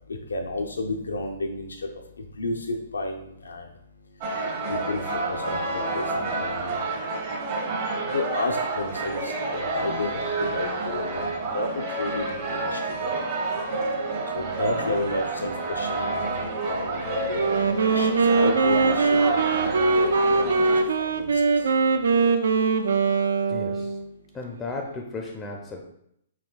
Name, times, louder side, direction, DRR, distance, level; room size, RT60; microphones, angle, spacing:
voice 1, 0.1-1.9 2.2-3.6 4.7-5.0 5.3-6.8 8.1-13.1 14.3-17.7 18.0-20.6 21.0-21.3, left 2 dB, 80° left, 4 dB, 0.5 m, -32 dB
sound 1, 4.2-20.8, right 3 dB, 45° right, 1.0 m, -29 dB
Wind instrument woodwind instrument, 17.3-24.1, right 4 dB, 70° right, 0.4 m, -22 dB
voice 2, 23.5-24.0 24.3-25.9, left 3 dB, 15° left, 1 dB, 0.5 m, -35 dB
4.9 x 3.2 x 2.3 m, 0.75 s
figure-of-eight pair, 120°, 0 cm